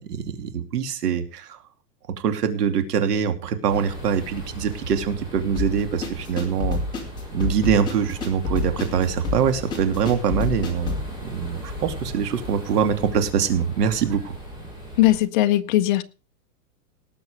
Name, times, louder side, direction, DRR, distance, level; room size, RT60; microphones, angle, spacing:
voice 1, 0.0-1.6 2.2-6.8 7.3-11.0 11.2-14.3, right 7 dB, 70° right, 8 dB, 2.9 m, -24 dB
sound 1, 3.7-15.2, equal, 10° right, 4.3 m, -37 dB
sound 2, 5.6-11.1, left 3 dB, 10° left, 3.1 m, -28 dB
voice 2, 15.0-16.0, left 15 dB, 30° left, 9 dB, 0.8 m, -19 dB
19.0 x 7.1 x 5.1 m, 0.33 s
supercardioid pair, 170°, 48 cm